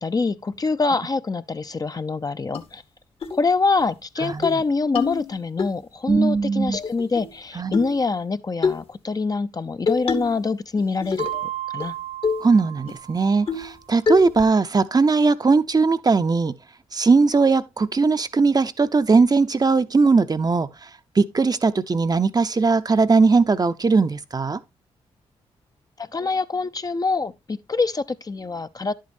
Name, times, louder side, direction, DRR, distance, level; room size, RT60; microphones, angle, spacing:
voice 1, 0.0-2.8 3.3-11.3 11.7-11.9 26.1-28.9, left 4 dB, 30° left, 0.5 m, -25 dB
sound 1, 2.6-2.7 3.2-3.4 3.8-3.9 4.2-4.6 5.0-5.7 6.7-7.4 7.7-8.0 8.6-8.8 9.9-10.5 10.8-11.5 11.8-11.9 12.2-12.5 12.9-13.0 13.5-13.8 14.1-14.5, left 5 dB, 45° left, 1.0 m, -26 dB
voice 2, 6.1-6.8 7.6-7.7 12.4-16.5 16.9-20.7 21.2-24.6, right 4 dB, 30° right, 0.6 m, -19 dB
Mallet percussion, 11.2-13.8, right 12 dB, 70° right, 1.6 m, -34 dB
10.5 x 7.5 x 2.6 m
supercardioid pair, 50°, 13 cm